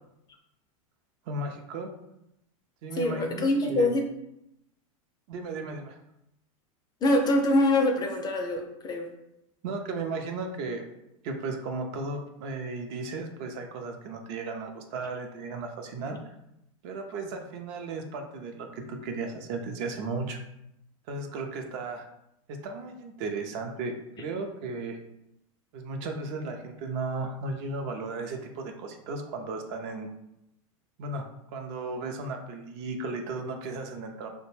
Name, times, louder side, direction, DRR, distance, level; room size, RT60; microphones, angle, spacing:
voice 1, 1.3-1.9 2.8-3.9 5.3-6.0 9.6-10.8 11.2-16.3 16.8-20.4 21.1-22.1 22.5-25.0 25.7-30.1 31.0-31.3 31.5-34.3, right 3 dB, 50° right, 4 dB, 0.5 m, -35 dB
voice 2, 2.9-4.1 7.0-9.1, left 1 dB, 25° left, 3 dB, 0.4 m, -24 dB
2.5 x 2.1 x 3.1 m, 0.83 s
hypercardioid pair, 110°, 18 cm